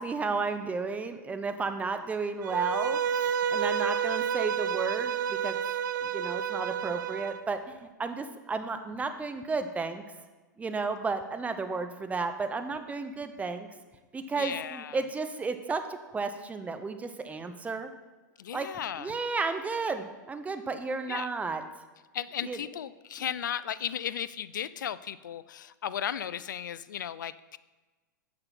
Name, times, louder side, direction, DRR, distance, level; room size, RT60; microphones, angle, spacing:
voice 1, 0.0-5.6 6.0-10.0 10.6-13.7 14.1-17.9 18.5-18.7 19.0-21.6 22.4-22.6 23.2-23.3, right 4 dB, 15° right, 8 dB, 0.7 m, -33 dB
Bowed string instrument, 2.4-7.4, right 8 dB, 75° right, 0.3 m, -30 dB
voice 2, 14.4-15.0 18.4-19.1 21.1-21.3 22.1-27.6, left 9 dB, 75° left, 17 dB, 0.4 m, -35 dB
6.7 x 5.8 x 5.9 m, 1.2 s
hypercardioid pair, 105°, 10 cm